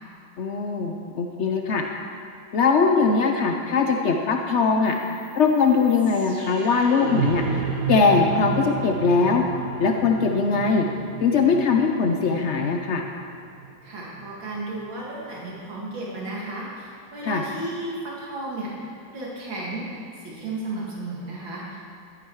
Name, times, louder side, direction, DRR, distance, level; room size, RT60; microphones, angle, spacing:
voice 1, 0.4-1.8 2.5-5.0 5.4-7.6 7.9-9.4 9.8-10.9 11.2-13.0 17.2-17.4, left 4 dB, 80° left, 3 dB, 0.6 m, -21 dB
sound 1, 4.9-14.9, right 6 dB, 50° right, 1.4 m, -32 dB
voice 2, 13.8-18.7 19.1-19.8 20.2-21.8, right 2 dB, 75° right, -5 dB, 2.9 m, -33 dB
13.5 x 10.5 x 4.7 m, 2.4 s
omnidirectional pair, 2.1 m